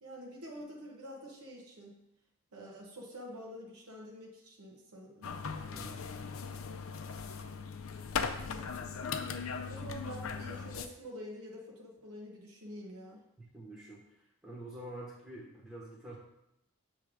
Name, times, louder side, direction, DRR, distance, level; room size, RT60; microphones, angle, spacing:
voice 1, 0.0-2.0 2.5-5.3 9.0-9.4 9.7-13.3, equal, 90° right, -2 dB, 1.1 m, -47 dB
sound 1, 5.2-10.9, left 5 dB, 70° left, 0.5 m, -38 dB
voice 2, 5.7-6.2 13.4-14.0 14.4-16.1, right 1 dB, 5° right, -6 dB, 1.0 m, -47 dB
7.3 x 3.4 x 4.8 m, 0.87 s
head